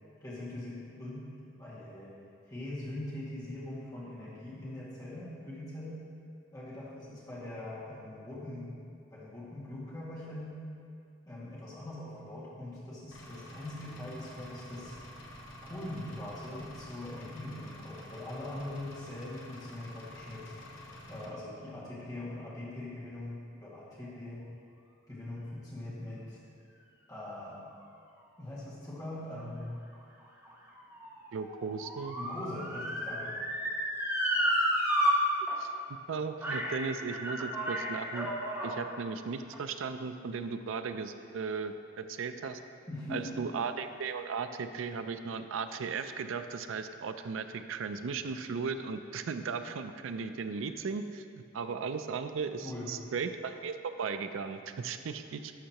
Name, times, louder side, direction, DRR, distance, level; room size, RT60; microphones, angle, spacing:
voice 1, 0.2-1.3 1.6-2.1 2.5-6.0 6.5-8.7 9.1-10.6 11.3-14.9 15.6-20.5 21.1-24.5 25.1-26.4 27.1-27.6 28.4-29.8 32.2-33.3 42.9-43.3 52.6-52.9, left 1 dB, 20° left, -9 dB, 2.0 m, -42 dB
Engine, 13.1-21.3, equal, 75° left, 0.9 m, -48 dB
Motor vehicle (road) / Siren, 29.9-35.1 35.5-35.6 36.4-36.8 37.1-38.8 39.5-39.6, equal, 10° right, 1.1 m, -32 dB
voice 2, 31.3-32.2 35.6-35.7 36.1-38.3 38.6-42.6 43.1-51.2 51.5-55.5, right 5 dB, 75° right, 9 dB, 0.4 m, -36 dB
11.5 x 5.6 x 2.9 m, 2.4 s
head